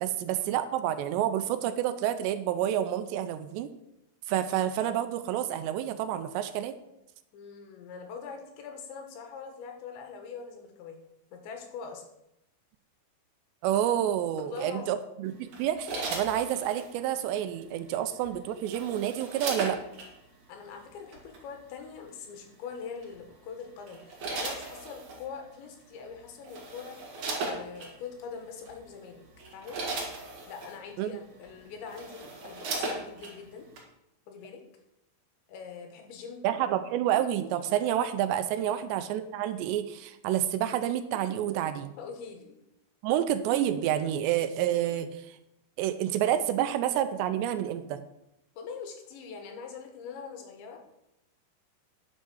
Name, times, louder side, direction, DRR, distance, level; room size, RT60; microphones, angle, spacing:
voice 1, 0.0-3.7 4.3-6.7 13.6-19.8 31.0-31.1 36.4-41.9 43.0-45.4 45.8-48.0, right 11 dB, 80° right, 10 dB, 2.8 m, -29 dB
voice 2, 7.3-11.0 11.3-12.0 14.4-15.1 18.0-18.1 20.5-27.0 27.4-29.2 29.5-29.8 30.5-33.7 34.3-34.6 35.5-36.4 38.6-38.9 42.0-42.6 48.6-50.8, left 6 dB, 85° left, 3 dB, 3.8 m, -43 dB
sound 1, 15.5-16.9 18.2-20.1 21.1-21.4 23.0-23.3 23.9-25.2 26.0-26.1 26.4-27.9 28.7-28.8 29.3-30.8 31.4-31.5 31.8-33.4 33.8-33.9, right 3 dB, 50° right, 3.0 m, -36 dB
10.5 x 6.3 x 6.3 m, 0.85 s
omnidirectional pair, 5.1 m